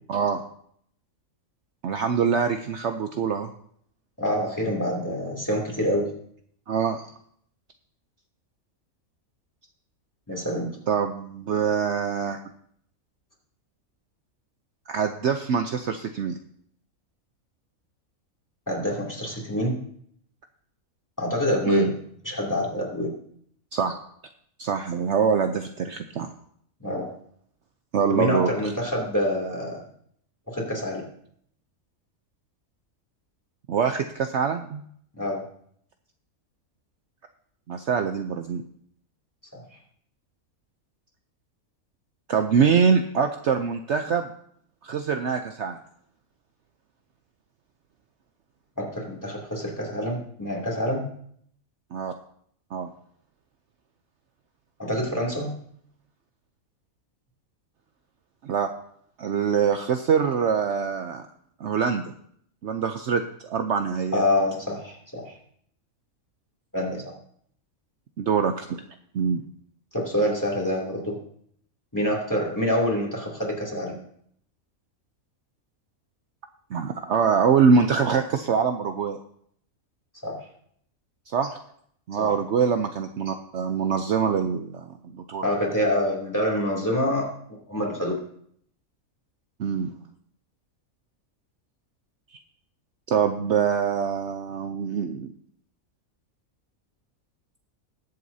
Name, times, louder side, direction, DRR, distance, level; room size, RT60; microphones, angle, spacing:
voice 1, 0.1-0.4 1.8-3.5 6.7-7.0 10.9-12.4 14.9-16.4 21.6-21.9 23.7-24.0 24.6-26.3 27.9-28.5 33.7-34.8 37.7-38.6 42.3-44.3 44.8-45.8 51.9-52.1 52.7-52.9 58.4-58.7 59.2-61.2 61.6-62.0 62.6-64.2 68.2-68.8 69.1-69.4 76.7-79.2 81.3-81.6 82.1-85.4 89.6-89.9 93.1-95.3, right 6 dB, 60° right, 6 dB, 0.9 m, -24 dB
voice 2, 4.2-6.1 10.3-10.7 18.7-19.8 21.2-21.9 22.2-23.1 26.8-27.1 28.1-29.8 30.5-31.1 35.2-35.4 48.8-51.1 54.8-55.5 64.1-65.3 66.7-67.1 69.9-71.2 71.9-74.0 80.2-80.4 82.2-82.3 85.4-88.2, left 1 dB, 10° left, -2 dB, 2.7 m, -26 dB
21.0 x 7.9 x 2.7 m, 0.65 s
omnidirectional pair, 1.5 m